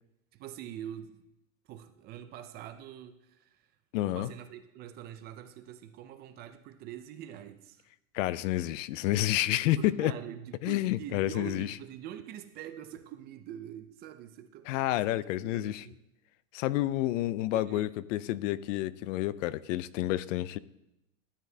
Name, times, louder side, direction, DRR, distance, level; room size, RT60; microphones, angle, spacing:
voice 1, 0.3-1.3 1.6-3.7 4.0-7.8 9.8-14.7 15.0-16.0 17.5-17.9, right 10 dB, 25° right, 9 dB, 0.4 m, -45 dB
voice 2, 3.9-4.3 8.1-10.1 10.6-11.7 14.7-15.8 16.5-20.6, left 15 dB, 75° left, 18 dB, 0.5 m, -29 dB
12.5 x 9.7 x 2.7 m, 0.89 s
supercardioid pair, 150°, 39 cm